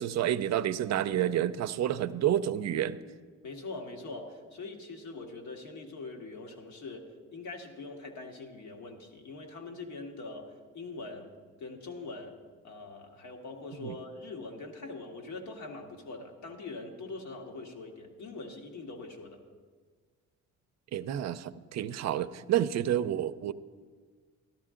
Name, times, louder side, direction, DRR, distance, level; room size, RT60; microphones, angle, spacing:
voice 1, 0.0-3.0 13.8-14.0 20.9-23.5, right 11 dB, 60° right, 13 dB, 0.5 m, -29 dB
voice 2, 3.4-11.3 11.6-12.3 12.6-19.4, left 3 dB, 70° left, 2 dB, 1.8 m, -43 dB
13.0 x 12.5 x 3.7 m, 1.5 s
cardioid pair, 90°, 30 cm